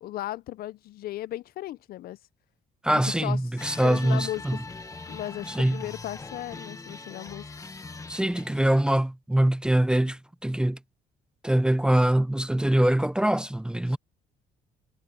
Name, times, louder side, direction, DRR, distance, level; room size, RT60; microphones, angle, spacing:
voice 1, 0.0-2.2 2.9-3.4 3.8-4.4 5.1-7.5 13.9-14.0, left 14 dB, 65° left, 0.6 m, -36 dB
voice 2, 2.8-4.6 5.5-5.8 8.1-10.8 11.4-14.0, right 1 dB, 5° right, 0.6 m, -23 dB
sound 1, 3.6-8.7, left 3 dB, 20° left, 1.4 m, -41 dB
cardioid pair, 110°, 17 cm